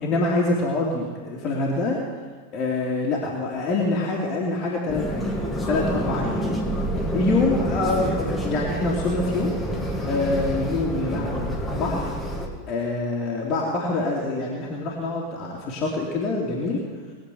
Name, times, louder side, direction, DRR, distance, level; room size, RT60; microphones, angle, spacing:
voice 1, 0.0-2.0 2.5-6.5 7.1-9.5 10.1-12.2 12.7-16.8, left 2 dB, 30° left, -4 dB, 2.6 m, -25 dB
sound 1, 4.9-12.5, equal, 5° left, 2.5 m, -27 dB
20.5 x 7.6 x 8.3 m, 1.5 s
figure-of-eight pair, 90°, 0 cm